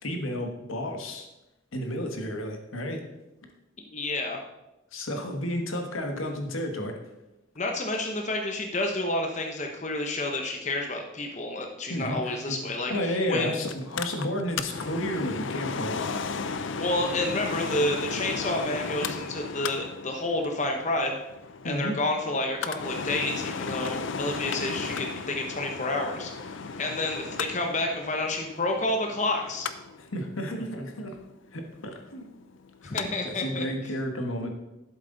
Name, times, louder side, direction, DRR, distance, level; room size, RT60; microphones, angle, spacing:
voice 1, 0.0-1.3 1.7-3.0 4.9-6.9 11.9-12.6 12.9-16.2 21.6-22.0 30.0-31.2 31.5-32.3 32.8-33.0 33.2-34.5, equal, 85° left, 4 dB, 1.5 m, -32 dB
voice 2, 3.8-4.4 7.6-13.5 16.8-21.2 21.6-29.7 32.8-33.7, left 2 dB, 35° left, 3 dB, 0.9 m, -29 dB
Mechanical fan, 13.7-33.1 33.4-33.5, left 5 dB, 70° left, 0.5 m, -35 dB
11.5 x 7.7 x 3.9 m, 0.97 s
head